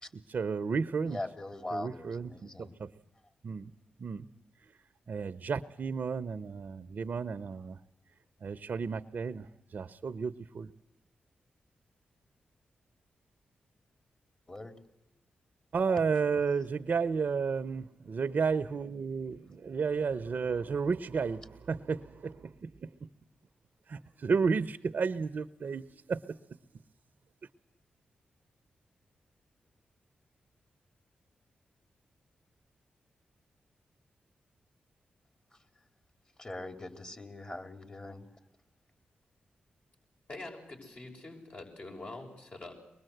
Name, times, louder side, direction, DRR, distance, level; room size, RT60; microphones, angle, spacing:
voice 1, 0.1-1.2 1.7-2.9 3.4-3.7 4.0-4.3 4.6-4.7 5.1-7.8 8.4-10.7 15.7-22.9 23.9-26.4, right 5 dB, 65° right, 11 dB, 0.8 m, -32 dB
voice 2, 1.1-2.7 14.5-14.7 36.4-38.2, left 2 dB, 30° left, 6 dB, 3.5 m, -41 dB
voice 3, 40.3-42.7, left 2 dB, 50° left, 1 dB, 6.2 m, -45 dB
24.0 x 20.5 x 8.0 m, 0.93 s
cardioid pair, 50°, 3 cm